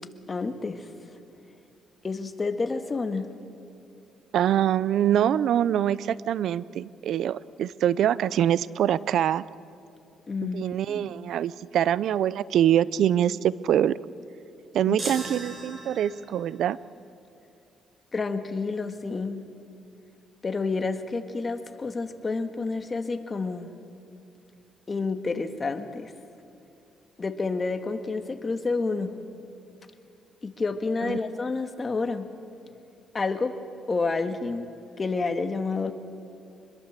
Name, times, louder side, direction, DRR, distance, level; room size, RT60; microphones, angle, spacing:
voice 1, 0.3-0.9 2.0-3.3 10.3-10.6 10.9-11.0 14.9-15.0 18.1-19.4 20.4-23.7 24.9-26.1 27.2-29.2 30.4-32.3 33.1-33.5 33.9-34.7 35.0-35.9, left 3 dB, 30° left, 8 dB, 1.7 m, -29 dB
voice 2, 4.3-9.4 10.5-14.0 14.7-16.8 31.0-31.2, right 10 dB, 75° right, 19 dB, 0.6 m, -24 dB
sound 1, 15.0-16.5, right 2 dB, 30° right, 6.0 m, -37 dB
25.5 x 21.5 x 7.5 m, 2.7 s
cardioid pair, 90°, 0 cm